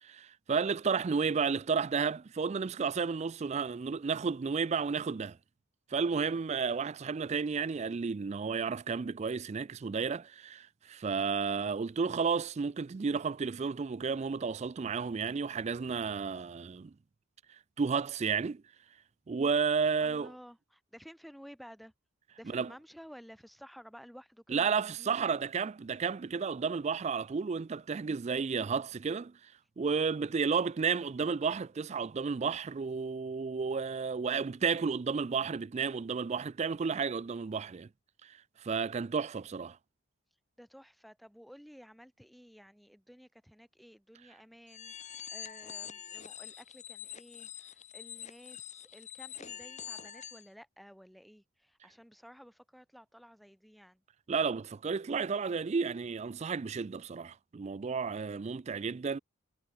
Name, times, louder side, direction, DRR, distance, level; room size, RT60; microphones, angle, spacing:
voice 1, 0.0-5.4 5.9-16.9 17.8-18.6 19.3-20.3 22.4-22.7 24.5-37.9 38.2-39.8 54.3-59.2, right 5 dB, 30° right, 0.3 m, -32 dB
voice 2, 20.0-21.9 22.4-25.1 40.6-54.0, equal, ahead, 6.9 m, -54 dB
sound 1, 44.7-50.5, left 9 dB, 30° left, 2.3 m, -45 dB
head